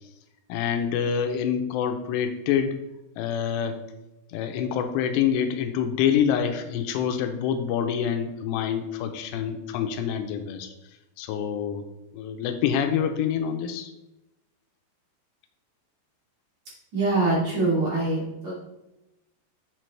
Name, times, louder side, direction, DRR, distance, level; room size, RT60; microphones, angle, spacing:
voice 1, 0.5-2.7 3.2-3.8 4.3-10.7 11.2-11.8 12.1-13.9, left 8 dB, 85° left, 7 dB, 2.9 m, -26 dB
voice 2, 16.9-18.5, right 2 dB, 45° right, -7 dB, 3.8 m, -24 dB
7.6 x 7.5 x 3.3 m, 0.95 s
omnidirectional pair, 4.9 m